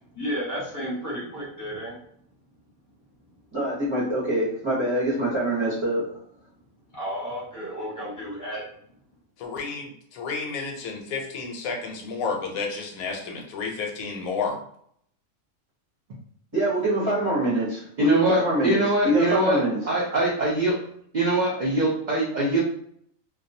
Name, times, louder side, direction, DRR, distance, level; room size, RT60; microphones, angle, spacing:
voice 1, 0.2-1.9 6.9-8.7, equal, 15° left, -7 dB, 0.7 m, -32 dB
voice 2, 3.5-6.2 16.5-19.8, right 1 dB, 25° right, -8 dB, 0.7 m, -24 dB
voice 3, 9.4-14.6, left 4 dB, 85° left, 1 dB, 1.0 m, -31 dB
voice 4, 18.0-19.6 19.9-20.7 21.1-22.6, right 2 dB, 75° right, -5 dB, 0.4 m, -23 dB
2.2 x 2.2 x 2.6 m, 0.65 s
omnidirectional pair, 1.5 m